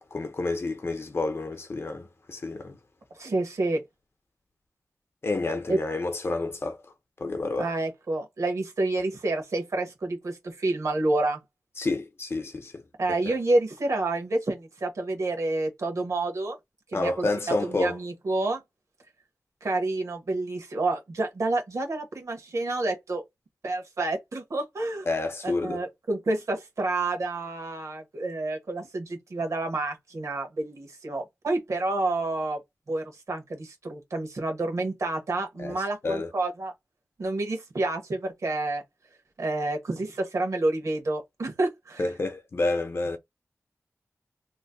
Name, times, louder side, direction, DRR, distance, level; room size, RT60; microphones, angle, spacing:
voice 1, 0.0-2.8 5.2-6.8 7.2-7.7 11.8-12.8 13.3-13.4 16.9-18.0 25.1-25.8 35.6-36.3 42.0-43.2, left 2 dB, 50° left, 0.7 m, -29 dB
voice 2, 3.2-3.8 5.7-5.8 7.6-11.4 13.0-16.6 16.9-17.3 17.6-18.6 19.6-23.2 23.6-25.1 25.4-32.6 32.9-36.7 37.2-38.8 39.4-42.1, right 2 dB, 70° right, 1.2 m, -29 dB
3.0 x 2.2 x 3.9 m
wide cardioid pair, 105°, 5 cm